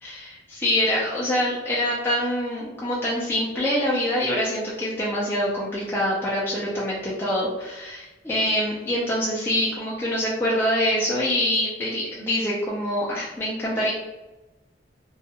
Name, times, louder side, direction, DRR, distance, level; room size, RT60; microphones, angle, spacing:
voice 1, 0.0-13.9, equal, 10° left, -8 dB, 0.3 m, -25 dB
2.3 x 2.2 x 2.8 m, 1.1 s
head